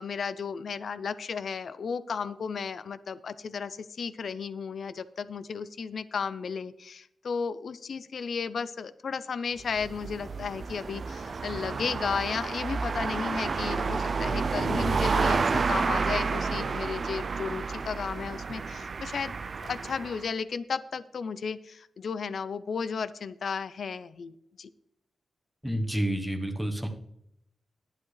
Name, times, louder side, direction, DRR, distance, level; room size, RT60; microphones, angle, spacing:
voice 1, 0.0-19.3 19.6-24.7, left 6 dB, 60° left, 15 dB, 0.5 m, -34 dB
sound 1, 9.6-20.2, right 4 dB, 40° right, 0.4 m, -30 dB
voice 2, 25.6-26.9, right 1 dB, ahead, 3 dB, 1.0 m, -29 dB
11.5 x 11.5 x 3.2 m, 0.78 s
wide cardioid pair, 165°, 0 cm